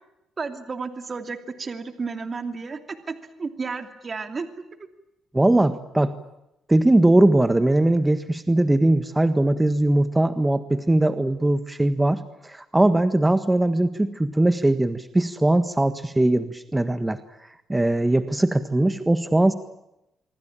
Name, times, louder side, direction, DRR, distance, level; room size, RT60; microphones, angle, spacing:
voice 1, 0.4-4.5, right 4 dB, 35° right, 8 dB, 2.8 m, -32 dB
voice 2, 5.3-6.1 6.7-19.5, right 1 dB, 10° right, 11 dB, 1.6 m, -20 dB
26.5 x 24.0 x 9.0 m, 0.88 s
cardioid pair, 90°, 0 cm